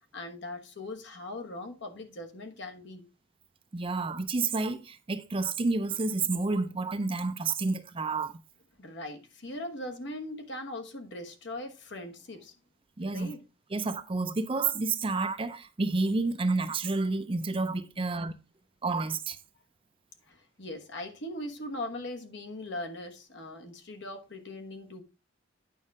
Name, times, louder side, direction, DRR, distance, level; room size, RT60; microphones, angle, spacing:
voice 1, 0.1-3.0 8.8-12.5 13.1-13.4 18.0-18.3 20.3-25.0, left 1 dB, 60° left, 1.3 m, -40 dB
voice 2, 3.7-8.4 13.0-13.3 13.7-18.3 18.8-19.4, right 3 dB, 25° right, 0.5 m, -30 dB
9.2 x 5.3 x 3.6 m
head